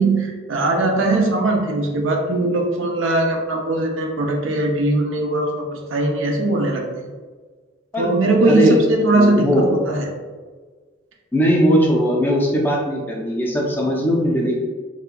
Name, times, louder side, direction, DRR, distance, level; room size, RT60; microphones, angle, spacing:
voice 1, 0.0-6.8 8.0-10.1, right 2 dB, 80° right, 2 dB, 0.5 m, -20 dB
voice 2, 7.9-8.7 9.1-9.7 11.3-14.6, equal, 10° left, -2 dB, 0.4 m, -19 dB
3.3 x 2.8 x 2.2 m, 1.5 s
head